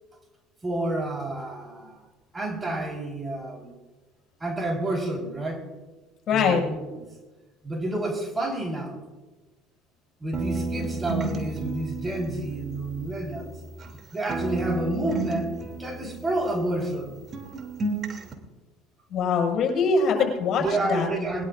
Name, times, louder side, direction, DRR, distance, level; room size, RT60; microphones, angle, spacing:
voice 1, 0.6-2.0 2.3-3.7 4.4-5.7 6.3-7.0 7.6-9.0 10.2-13.5 14.1-15.5 15.8-17.1 20.6-21.5, right 1 dB, 20° right, 2 dB, 4.4 m, -29 dB
voice 2, 6.3-6.6 19.1-20.6 20.9-21.1, left 5 dB, 45° left, 1 dB, 6.2 m, -22 dB
sound 1, 10.3-14.0 14.3-17.1 17.3-18.3, right 3 dB, 35° right, 2.9 m, -33 dB
21.5 x 21.5 x 2.6 m, 1.2 s
hypercardioid pair, 65°, 0 cm